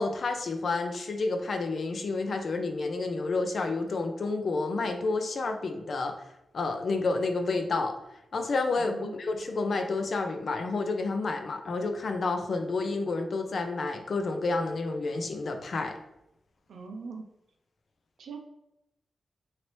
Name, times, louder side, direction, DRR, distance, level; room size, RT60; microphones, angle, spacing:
voice 1, 0.0-6.1 6.5-8.0 8.3-8.9 9.2-16.0, left 3 dB, 65° left, 5 dB, 0.5 m, -30 dB
voice 2, 8.7-9.2 16.7-17.2 18.2-18.4, right 4 dB, 85° right, 3 dB, 0.6 m, -41 dB
2.9 x 2.8 x 3.1 m, 0.86 s
cardioid pair, 75°, 0 cm